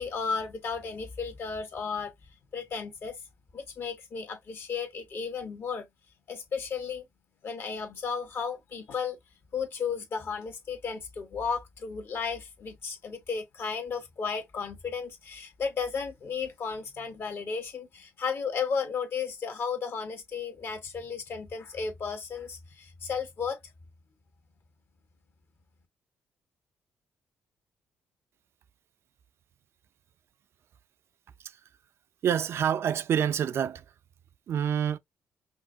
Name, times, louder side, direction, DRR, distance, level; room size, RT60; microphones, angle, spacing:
voice 1, 0.0-2.1 2.5-3.2 3.5-5.9 6.3-7.0 7.4-9.2 9.5-23.6, left 5 dB, 55° left, 1.6 m, -34 dB
voice 2, 32.2-33.8 34.5-35.0, right 9 dB, 65° right, 0.5 m, -27 dB
5.4 x 2.5 x 2.7 m
cardioid pair, 80°, 5 cm